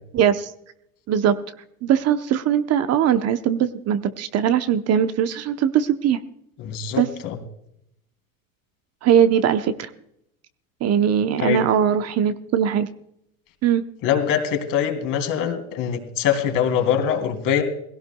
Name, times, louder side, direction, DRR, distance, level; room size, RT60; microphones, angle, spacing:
voice 1, 0.1-0.5 1.1-1.4 1.8-6.2 7.0-7.1 9.0-9.9 10.8-12.9 13.6-13.8, right 9 dB, 35° right, 10 dB, 0.9 m, -20 dB
voice 2, 6.6-7.4 11.4-11.6 14.0-17.6, left 8 dB, 50° left, 5 dB, 3.2 m, -23 dB
18.5 x 17.0 x 2.3 m, 0.74 s
hypercardioid pair, 105°, 42 cm